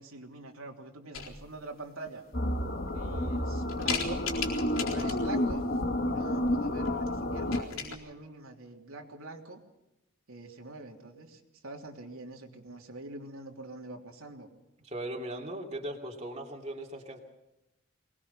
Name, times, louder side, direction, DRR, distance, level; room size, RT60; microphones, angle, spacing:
voice 1, 0.0-2.2 2.9-4.2 4.7-5.6 6.0-9.6 10.3-14.5, right 2 dB, 85° right, 1 dB, 3.1 m, -44 dB
sound 1, 1.1-1.7 2.3-2.4 2.9-3.3 3.7-5.4 6.8-7.1 7.3-8.0, left 6 dB, 70° left, 4.1 m, -37 dB
sound 2, 2.3-7.6, left 1 dB, 50° left, 1.7 m, -30 dB
voice 2, 14.8-17.2, right 1 dB, 30° right, 0 dB, 2.6 m, -38 dB
24.0 x 19.5 x 5.6 m, 0.94 s
head